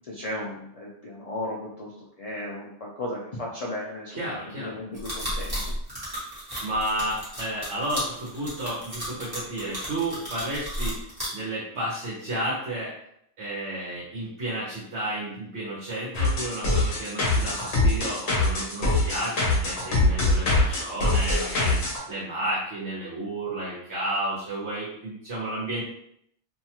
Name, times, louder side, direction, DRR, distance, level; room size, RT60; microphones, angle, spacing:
voice 1, 0.0-5.7, left 1 dB, 80° left, -3 dB, 0.3 m, -35 dB
voice 2, 4.1-4.8 6.6-11.0 11.3-12.9 13.4-25.8, right 1 dB, 70° right, -7 dB, 1.2 m, -32 dB
sound 1, 4.9-11.3, equal, 20° right, 1.1 m, -33 dB
sound 2, 16.1-22.0, left 2 dB, 55° left, 0.9 m, -23 dB
2.7 x 2.3 x 2.8 m, 0.72 s
omnidirectional pair, 1.3 m